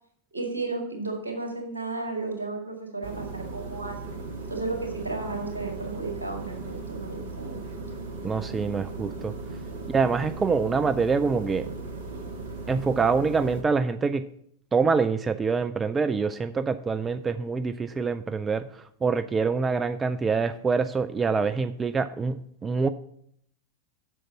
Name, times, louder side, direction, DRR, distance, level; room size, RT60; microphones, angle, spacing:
voice 1, 0.3-4.1 4.5-7.6, right 3 dB, 75° right, 2 dB, 2.0 m, -33 dB
sound 1, 3.0-13.6, right 3 dB, 55° right, 1.4 m, -37 dB
voice 2, 8.2-9.3 9.9-11.7 12.7-14.2 14.7-22.9, right 5 dB, 15° right, 12 dB, 0.3 m, -25 dB
7.7 x 6.5 x 5.7 m, 0.69 s
figure-of-eight pair, 90°, 0 cm